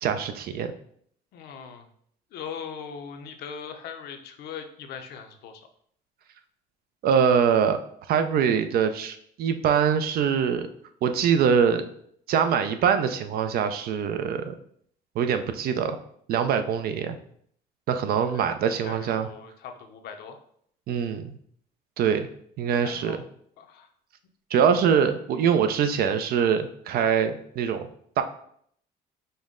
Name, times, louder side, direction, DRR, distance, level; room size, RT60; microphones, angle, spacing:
voice 1, 0.0-0.7 7.0-7.8 8.1-10.7 11.0-11.8 12.3-14.5 15.2-16.0 16.3-17.2 17.9-19.3 20.9-21.4 22.0-22.3 22.6-23.2 24.5-27.9 28.2-28.3, right 7 dB, 65° right, 9 dB, 0.5 m, -23 dB
voice 2, 1.3-1.9 2.3-5.6 18.2-20.4 22.8-23.2 23.6-23.9, left 7 dB, 70° left, 6 dB, 0.6 m, -40 dB
5.3 x 2.1 x 3.7 m, 0.65 s
cardioid pair, 110°, 17 cm